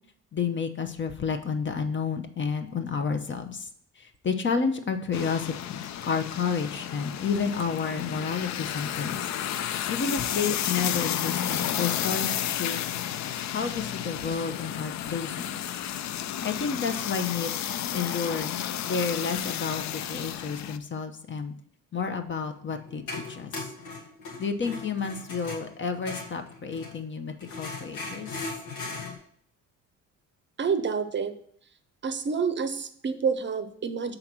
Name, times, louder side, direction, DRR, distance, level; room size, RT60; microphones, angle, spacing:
voice 1, 0.3-3.7 4.0-9.3 9.9-12.8 13.5-15.6 16.4-17.5 17.9-21.5 21.9-23.0 23.3-23.7 24.4-28.5, left 5 dB, 40° left, 6 dB, 0.8 m, -30 dB
sound 1, 5.1-20.8, left 11 dB, 65° left, 0.5 m, -32 dB
sound 2, 22.7-27.0 27.4-29.1, left 3 dB, 90° left, 1.7 m, -38 dB
voice 2, 30.6-31.3 32.0-34.2, right 5 dB, 40° right, 10 dB, 0.6 m, -28 dB
5.8 x 3.9 x 6.0 m, 0.64 s
cardioid pair, 90°, 30 cm